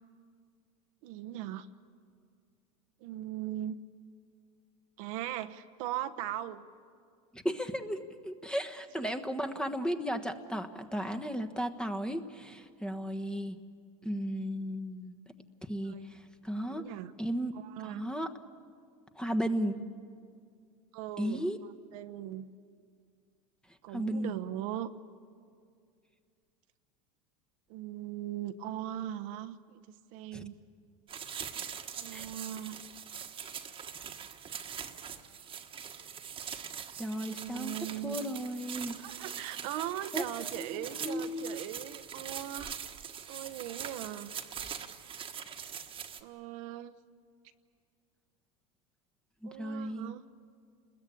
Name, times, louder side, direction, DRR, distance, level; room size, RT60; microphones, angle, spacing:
voice 1, 1.0-1.7 3.0-3.8 5.0-6.6 15.8-16.1 16.7-17.1 17.5-18.0 20.9-21.5 21.9-22.5 23.8-24.9 27.7-29.8 30.1-30.6 32.0-32.8 37.2-38.2 39.0-42.8 43.3-44.3 46.2-46.9 49.4-50.2, right 12 dB, 65° right, 9 dB, 1.1 m, -39 dB
voice 2, 7.3-13.6 14.0-15.1 15.6-16.9 17.2-17.5 17.8-18.3 19.2-19.8 21.2-21.6 23.9-24.4 30.3-30.5 32.1-32.3 37.0-37.8 38.0-39.0 40.1-41.6 49.4-50.1, equal, 5° left, 8 dB, 1.3 m, -35 dB
sound 1, 31.1-46.2, right 8 dB, 30° right, 1.5 m, -42 dB
30.0 x 21.0 x 8.6 m, 2.2 s
supercardioid pair, 120°, 19 cm